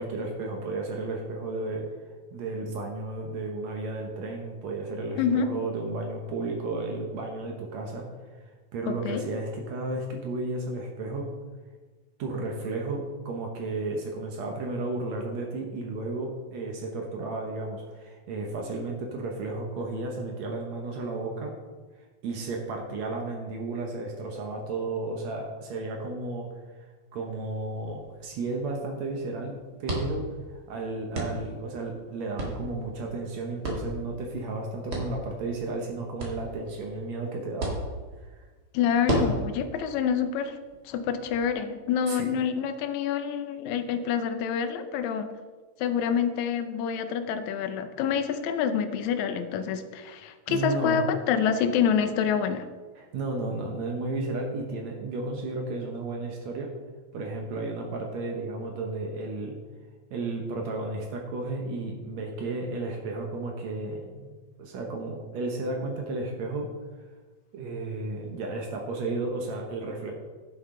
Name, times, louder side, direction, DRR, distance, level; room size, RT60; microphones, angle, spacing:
voice 1, 0.0-1.8 2.3-8.1 8.4-11.3 12.2-21.5 22.2-26.5 27.1-37.8 38.2-38.5 42.1-42.3 50.5-51.1 53.0-56.7 57.1-59.6 60.1-66.7 67.5-70.1, right 2 dB, 70° right, 1 dB, 2.1 m, -33 dB
voice 2, 5.2-5.5 8.9-9.2 38.7-40.6 40.9-45.3 45.8-52.7, left 7 dB, 80° left, 8 dB, 2.0 m, -27 dB
sound 1, 27.2-41.4, right 1 dB, 40° right, 2.1 m, -36 dB
10.5 x 7.9 x 3.8 m, 1.4 s
omnidirectional pair, 3.4 m